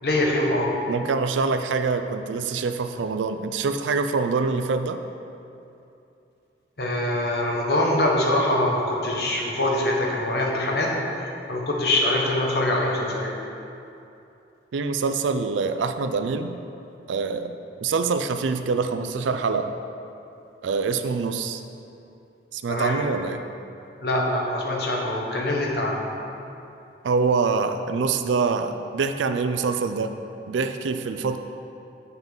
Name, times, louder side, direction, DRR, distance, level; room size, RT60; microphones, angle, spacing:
voice 1, 0.0-0.7 6.8-10.9 11.5-13.3 22.7-23.0 24.0-26.0, left 1 dB, 60° left, -2 dB, 1.0 m, -23 dB
voice 2, 0.9-5.0 14.7-16.5 17.1-19.7 20.6-21.6 22.5-23.4 27.0-30.2 30.5-31.4, right 4 dB, 90° right, 8 dB, 0.4 m, -25 dB
7.1 x 5.6 x 3.8 m, 2.7 s
head